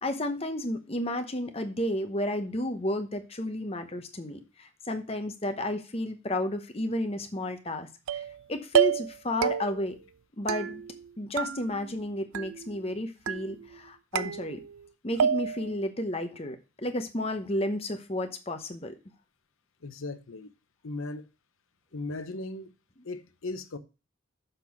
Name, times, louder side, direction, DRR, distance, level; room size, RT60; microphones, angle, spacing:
voice 1, 0.0-8.2 8.5-10.0 10.4-10.8 11.2-14.6 15.0-19.0, left 1 dB, 30° left, 0.9 m, -32 dB
sound 1, 8.1-8.4 8.7-9.2 9.4-9.9 10.5-11.1 11.4-12.0 12.3-12.9 13.3-13.8 14.2-14.9 15.2-15.7, right 8 dB, 85° right, 0.4 m, -29 dB
voice 2, 19.8-20.5 20.8-21.2 21.9-22.7 23.0-23.8, left 2 dB, 90° left, 0.9 m, -37 dB
6.7 x 6.1 x 5.8 m
head